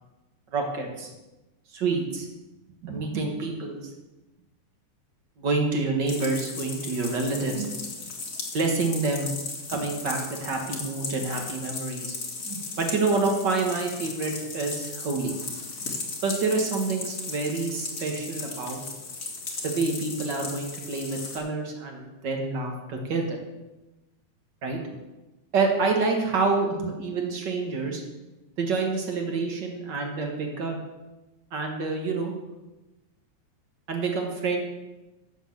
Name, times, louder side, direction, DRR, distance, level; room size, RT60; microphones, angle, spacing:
voice 1, 0.5-1.1 1.7-2.3 2.8-3.8 5.4-7.7 8.5-9.3 9.7-12.1 12.4-15.3 16.2-18.8 19.6-23.4 24.6-24.8 25.5-28.0 28.6-30.8 31.5-32.3 33.9-34.6, right 3 dB, 50° right, 2 dB, 1.4 m, -27 dB
sound 1, 6.1-21.4, left 3 dB, 35° left, 1.5 m, -36 dB
7.9 x 7.2 x 7.2 m, 1.1 s
omnidirectional pair, 3.6 m